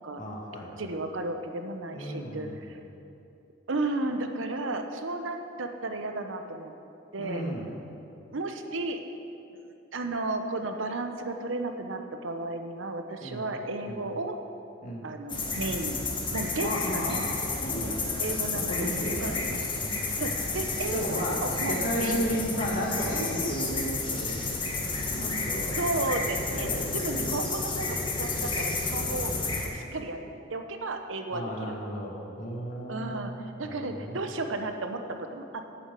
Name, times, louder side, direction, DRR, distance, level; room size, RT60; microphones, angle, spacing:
voice 1, 0.2-0.7 1.9-2.6 7.2-7.7 13.2-13.4 13.9-14.0 14.8-15.1 16.5-17.3 17.6-18.2 18.5-20.1 20.9-25.7 26.5-27.4 31.3-34.2, equal, 45° left, -3 dB, 2.0 m, -34 dB
voice 2, 0.8-2.8 3.7-6.7 7.1-7.4 8.3-9.0 9.5-9.6 9.9-14.4 15.0-17.2 18.2-18.8 19.2-19.4 20.2-22.4 25.8-29.4 29.7-30.2 30.5-31.7 32.9-33.3 33.6-35.6, right 2 dB, 75° right, 6 dB, 0.9 m, -33 dB
sound 1, 15.3-29.7, left 3 dB, 25° left, 1.4 m, -31 dB
8.0 x 7.6 x 8.3 m, 2.7 s
head